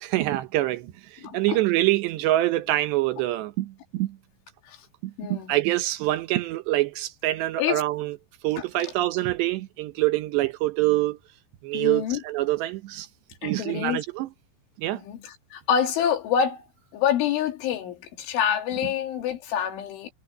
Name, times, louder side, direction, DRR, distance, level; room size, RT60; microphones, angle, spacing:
voice 1, 0.0-4.2 5.0-8.2 8.4-11.2 11.6-13.1 13.4-14.3 14.8-15.0, right 16 dB, 75° right, 3.0 m, -25 dB
voice 2, 1.2-1.6 4.7-4.8 5.2-5.6 7.6-7.8 8.6-8.9 11.7-12.2 13.4-14.0 14.9-16.7 16.9-20.1, left 8 dB, 85° left, 4.9 m, -27 dB
omnidirectional pair, 5.3 m